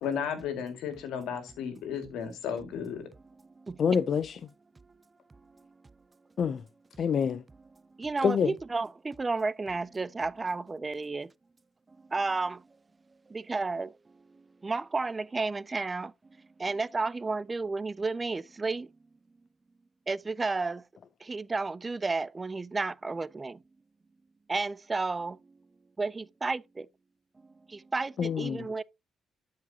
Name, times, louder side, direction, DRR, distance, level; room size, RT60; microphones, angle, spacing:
voice 1, 0.0-3.1, left 7 dB, 85° left, 2.0 m, -34 dB
voice 2, 3.8-4.4 6.4-6.6 7.0-7.4 8.2-8.5 28.2-28.7, left 7 dB, 55° left, 0.5 m, -26 dB
voice 3, 8.0-11.3 12.1-12.6 13.3-13.9 14.6-16.1 16.6-18.9 20.1-20.8 21.3-23.6 24.5-25.4 26.0-26.9 27.7-28.8, right 3 dB, 25° right, 0.3 m, -32 dB
12.0 x 4.9 x 2.8 m
cardioid pair, 90°, 0 cm